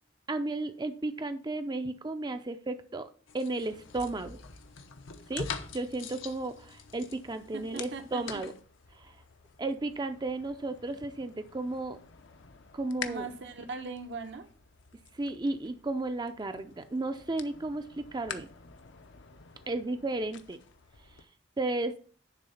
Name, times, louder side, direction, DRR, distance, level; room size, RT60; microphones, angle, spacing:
voice 1, 0.3-3.1 3.3-4.4 5.3-8.5 8.9-9.1 9.6-12.0 12.7-13.3 15.1-18.5 19.7-20.6 21.6-21.9, right 2 dB, 20° right, 9 dB, 0.5 m, -34 dB
sound 1, 3.3-8.6, left 5 dB, 85° left, 1.0 m, -43 dB
sound 2, 3.6-21.2, left 7 dB, 65° left, 0.7 m, -50 dB
voice 2, 7.5-8.4 13.1-14.5, right 4 dB, 65° right, 7 dB, 0.9 m, -40 dB
10.0 x 3.7 x 5.6 m, 0.42 s
head